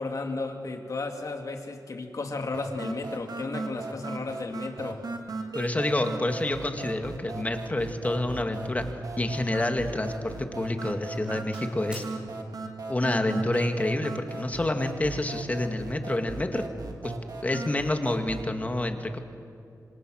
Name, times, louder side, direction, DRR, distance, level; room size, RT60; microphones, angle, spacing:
voice 1, 0.0-5.0, left 3 dB, 60° left, 4 dB, 2.5 m, -34 dB
sound 1, 2.5-18.5, right 3 dB, 70° right, 2.4 m, -38 dB
voice 2, 5.5-8.9 9.2-12.0 12.9-16.6 17.0-17.1 17.4-19.2, left 1 dB, 25° left, 5 dB, 2.0 m, -28 dB
Doorbell, 7.2-7.6 8.6-9.7 9.9-10.4 10.8-12.1, equal, 15° right, 6.0 m, -50 dB
27.0 x 26.0 x 6.4 m, 2.5 s
wide cardioid pair, 100°, 7 cm